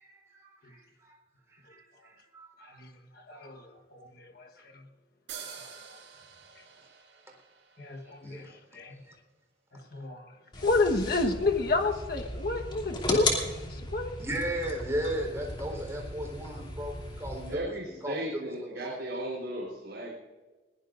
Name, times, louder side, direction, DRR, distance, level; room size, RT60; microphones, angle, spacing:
voice 1, 0.0-0.8 1.1-1.2 1.5-2.8 3.4-3.5 8.2-8.5 14.2-17.6 18.0-18.4 18.8-19.0, right 1 dB, 15° right, 0 dB, 4.0 m, -36 dB
voice 2, 2.6-4.9 5.5-6.0 7.8-9.0 9.7-14.1, left 2 dB, 55° left, 3 dB, 1.3 m, -31 dB
sound 1, 5.3-8.8, right 7 dB, 85° right, 5.4 m, -48 dB
sound 2, 10.5-17.5, left 2 dB, 25° left, 2.8 m, -36 dB
voice 3, 17.5-20.1, right 1 dB, 70° right, -4 dB, 3.8 m, -36 dB
21.0 x 18.0 x 2.6 m, 1.3 s
head